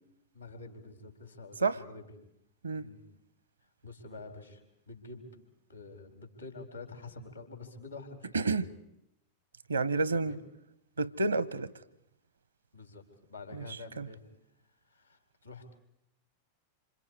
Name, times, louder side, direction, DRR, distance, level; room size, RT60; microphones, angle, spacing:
voice 1, 0.3-2.1 2.7-3.0 3.8-5.3 5.7-8.6 10.1-10.4 12.7-13.0 13.3-14.2 14.9-15.6, left 3 dB, 85° left, 4.2 m, -47 dB
voice 2, 9.7-10.4 11.0-11.7 13.5-13.6 14.0-14.1, right 3 dB, 75° right, 0.9 m, -29 dB
27.5 x 26.5 x 4.8 m
figure-of-eight pair, 90°, 0 cm